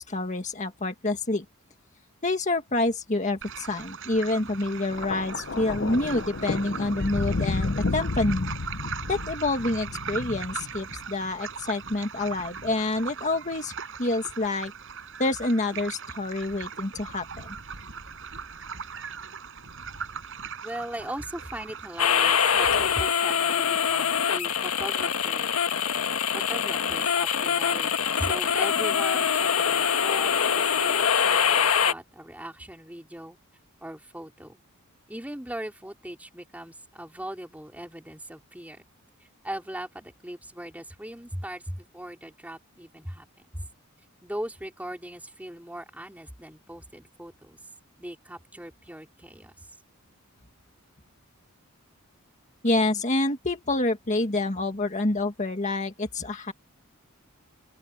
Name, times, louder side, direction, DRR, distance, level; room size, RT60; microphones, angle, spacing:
voice 1, 0.0-1.4 2.2-8.5 9.1-13.7 14.0-14.7 15.2-17.5 52.6-56.5, left 2 dB, 35° left, 1.8 m, -27 dB
sound 1, 3.4-23.0, right 6 dB, 60° right, 7.9 m, -40 dB
Thunder, 4.9-11.3 12.3-12.5, left 3 dB, 55° left, 0.7 m, -31 dB
voice 2, 20.6-25.5 26.3-33.4 33.8-34.6 35.1-38.8 39.4-43.3 43.5-43.7 44.2-47.6 48.0-49.7, right 1 dB, 5° right, 3.2 m, -39 dB
sound 2, 22.0-31.9, left 7 dB, 75° left, 1.5 m, -24 dB
open air
head